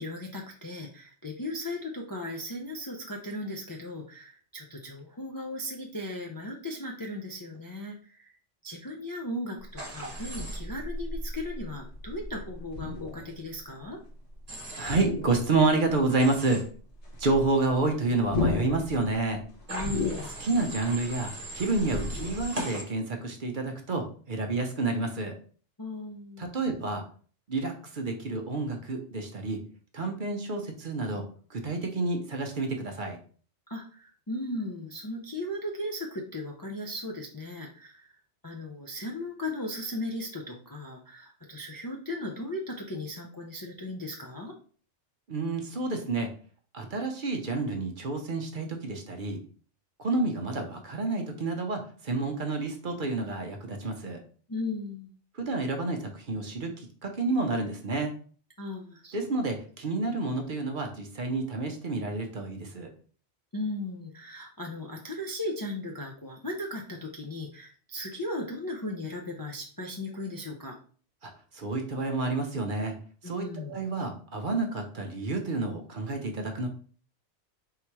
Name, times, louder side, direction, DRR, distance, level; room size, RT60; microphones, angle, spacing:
voice 1, 0.0-8.4 8.6-14.0 19.7-20.3 25.8-26.5 33.7-38.1 38.4-44.5 54.5-55.1 58.6-59.1 63.5-70.8 73.2-73.8, left 1 dB, 30° left, 0 dB, 0.4 m, -37 dB
sound 1, 9.6-14.5 14.8-16.0 16.3-16.4 16.7-22.4, left 2 dB, 70° left, 1.4 m, -35 dB
Human voice / Train, 9.8-10.6 14.5-15.0 16.2-16.6 19.7-22.8, right 1 dB, 35° right, 1.2 m, -39 dB
voice 2, 14.8-16.7 17.2-19.4 20.4-25.3 26.4-27.0 27.5-29.6 29.9-33.2 45.3-46.3 46.7-49.4 50.0-54.2 55.3-58.1 59.1-62.9 71.2-72.9 73.2-76.7, right 3 dB, 50° right, 3 dB, 0.8 m, -29 dB
3.7 x 2.8 x 4.6 m, 0.42 s
omnidirectional pair, 1.2 m